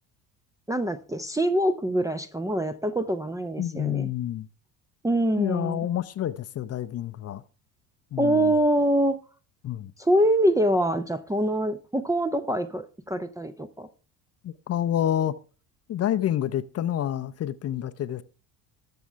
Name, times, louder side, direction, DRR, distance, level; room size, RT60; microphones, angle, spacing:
voice 1, 0.7-4.1 5.0-5.8 8.2-9.2 10.0-13.9, right 1 dB, 5° right, 0.6 m, -24 dB
voice 2, 3.6-4.5 5.4-7.4 8.1-8.5 9.6-9.9 14.4-15.3 15.9-18.2, left 11 dB, 30° left, 0.7 m, -28 dB
20.0 x 7.1 x 3.3 m
figure-of-eight pair, 60°, 49 cm